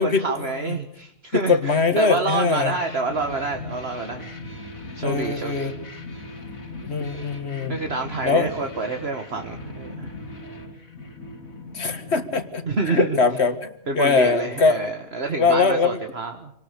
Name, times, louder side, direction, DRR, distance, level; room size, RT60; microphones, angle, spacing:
voice 1, 0.0-4.3 5.0-5.7 7.7-10.1 12.7-13.2 13.9-16.5, right 3 dB, 50° right, 4 dB, 1.9 m, -28 dB
voice 2, 1.5-2.7 5.0-5.7 6.9-7.7 8.2-8.5 11.7-14.9 15.4-16.0, left 4 dB, 50° left, 10 dB, 1.9 m, -21 dB
sound 1, 2.7-13.3, left 2 dB, 80° left, 3.3 m, -39 dB
27.0 x 19.0 x 6.8 m, 0.71 s
omnidirectional pair, 1.4 m